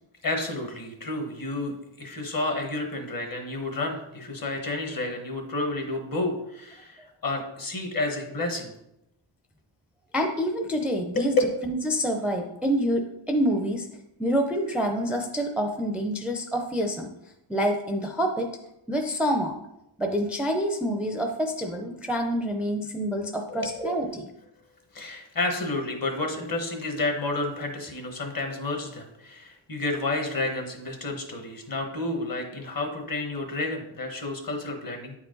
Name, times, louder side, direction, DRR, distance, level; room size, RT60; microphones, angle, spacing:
voice 1, 0.2-8.7 11.1-11.3 23.5-23.9 24.9-35.1, left 2 dB, 45° left, 3 dB, 1.4 m, -31 dB
voice 2, 10.1-11.4 11.6-13.9 14.2-17.1 17.5-18.5 18.9-19.5 20.0-24.3, equal, 5° right, 3 dB, 0.5 m, -27 dB
9.3 x 4.7 x 3.9 m, 0.86 s
wide cardioid pair, 145°, 47 cm